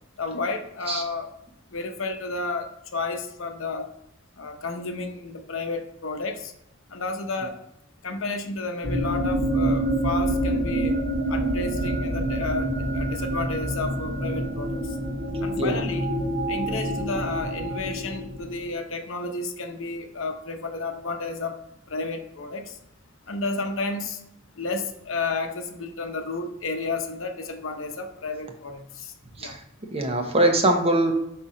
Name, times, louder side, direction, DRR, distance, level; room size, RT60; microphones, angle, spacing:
voice 1, 0.2-1.3 1.7-3.9 4.4-6.5 6.9-7.6 8.0-11.0 11.3-15.0 15.4-16.1 16.5-21.6 21.9-22.8 23.3-24.2 24.6-29.1 29.4-29.6, left 3 dB, 80° left, 5 dB, 0.8 m, -31 dB
sound 1, 8.8-18.6, right 1 dB, 75° right, 2.1 m, -27 dB
voice 2, 29.9-31.1, right 1 dB, 30° right, 4 dB, 1.0 m, -22 dB
5.6 x 4.3 x 5.0 m, 0.82 s
head